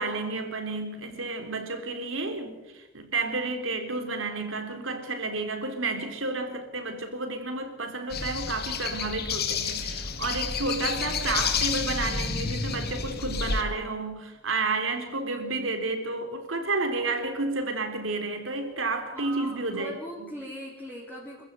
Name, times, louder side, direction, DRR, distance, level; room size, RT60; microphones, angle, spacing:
voice 1, 0.0-20.3, right 3 dB, 85° right, 3.7 m, -31 dB
Burst of birdsong, 8.1-13.6, left 5 dB, 55° left, 2.0 m, -30 dB
voice 2, 19.1-21.4, equal, 10° left, 3.9 m, -40 dB
26.5 x 15.0 x 8.2 m
head